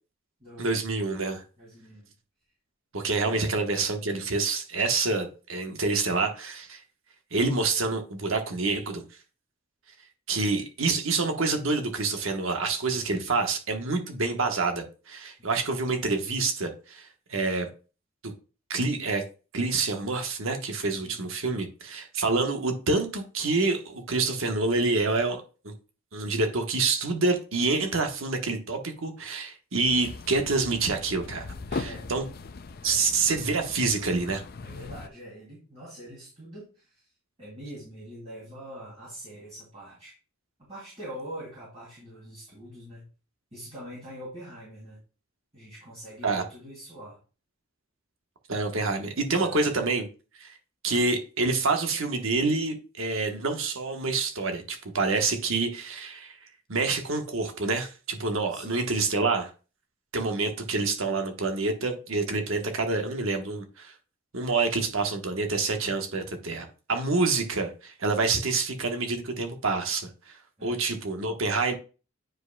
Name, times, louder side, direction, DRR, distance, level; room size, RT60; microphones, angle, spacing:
voice 1, 0.6-1.4 2.9-6.8 7.3-9.0 10.3-17.7 18.2-18.3 18.7-19.2 19.5-25.7 26.1-32.2 32.8-34.4 46.2-46.4 48.5-50.1 50.4-50.5 50.8-56.4 56.7-59.5 60.1-63.9 64.3-71.7, right 3 dB, 70° right, 1.2 m, -27 dB
voice 2, 1.6-2.1 3.3-3.5 10.4-10.6 20.9-21.2 31.8-32.4 32.8-33.0 34.6-37.1 37.4-40.1 40.7-43.1 43.5-45.0 45.5-47.2 49.3-49.6 58.5-58.8 70.6-70.9, right 1 dB, 30° right, 2.7 m, -44 dB
sound 1, 29.8-35.1, left 3 dB, 45° left, 0.4 m, -39 dB
9.1 x 5.0 x 2.2 m
head